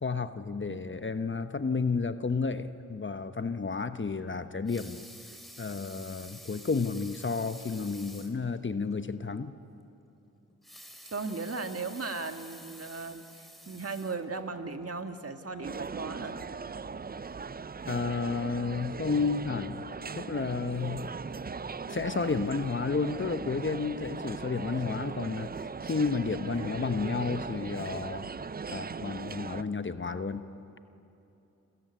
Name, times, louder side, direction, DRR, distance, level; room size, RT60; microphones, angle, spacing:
voice 1, 0.0-5.0 5.6-9.5 17.9-19.8 20.2-21.1 21.9-28.3 28.7-30.4, left 4 dB, 35° left, 10 dB, 1.1 m, -31 dB
Water tap faucet / Sink (filling or washing) / Liquid, 4.5-8.4 8.9-9.0 9.3-9.4 10.5-14.6 15.2-15.3, equal, ahead, 3.6 m, -50 dB
voice 2, 11.1-16.4 26.4-26.9, right 4 dB, 45° right, 7 dB, 1.8 m, -37 dB
sound 1, 15.6-29.6, right 5 dB, 25° right, 0.6 m, -39 dB
28.5 x 14.0 x 9.6 m, 2.8 s
cardioid pair, 45°, 34 cm